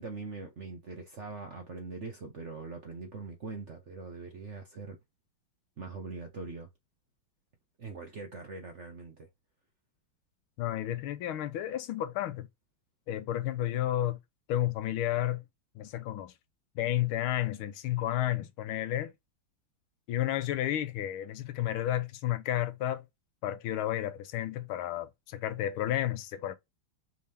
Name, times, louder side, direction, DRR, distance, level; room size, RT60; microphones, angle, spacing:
voice 1, 0.0-5.0 5.8-6.7 7.8-9.3, right 4 dB, 55° right, 0.8 m, -42 dB
voice 2, 10.6-12.5 13.1-14.2 14.5-15.4 15.7-16.3 16.7-19.1 20.1-23.0 23.4-26.6, left 13 dB, 85° left, 1.5 m, -31 dB
5.5 x 2.7 x 3.4 m
omnidirectional pair, 2.3 m